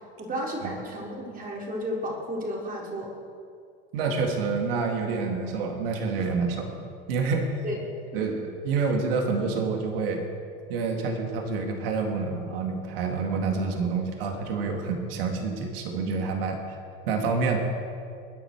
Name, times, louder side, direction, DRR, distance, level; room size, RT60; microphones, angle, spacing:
voice 1, 0.2-3.1 7.6-7.8 8.1-8.2, equal, 30° right, -2 dB, 4.5 m, -33 dB
voice 2, 3.9-6.8 7.1-7.7 8.1-10.3 10.7-16.8 17.1-17.6, right 4 dB, 75° right, 3 dB, 2.3 m, -28 dB
21.5 x 10.0 x 4.8 m, 2.4 s
hypercardioid pair, 95°, 29 cm